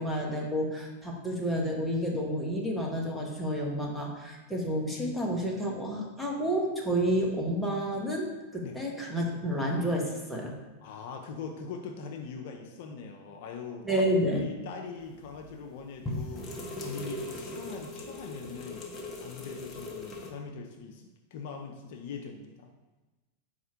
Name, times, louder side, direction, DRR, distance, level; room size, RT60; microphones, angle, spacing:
voice 1, 0.0-10.5 13.8-14.5, equal, ahead, -3 dB, 0.9 m, -30 dB
voice 2, 10.8-13.9 14.4-22.7, left 5 dB, 55° left, 3 dB, 0.4 m, -42 dB
sound 1, 15.2-15.5 16.1-20.3, left 1 dB, 30° left, 0.7 m, -39 dB
4.2 x 2.4 x 4.3 m, 1.1 s
figure-of-eight pair, 95°, 0 cm